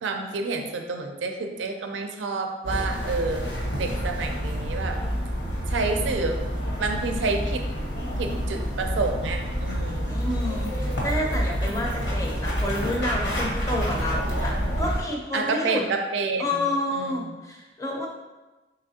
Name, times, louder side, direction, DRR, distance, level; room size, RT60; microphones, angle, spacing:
voice 1, 0.0-5.0 5.7-6.4 6.8-7.6 8.2-10.3 15.3-16.6 16.9-17.4, right 3 dB, 75° right, 4 dB, 0.4 m, -29 dB
sound 1, 2.6-15.0, equal, 70° left, 0.9 m, -28 dB
voice 2, 10.1-14.5 14.8-15.8 16.4-18.1, left 1 dB, 15° left, -2 dB, 0.5 m, -29 dB
4.0 x 3.3 x 2.7 m, 1.1 s
head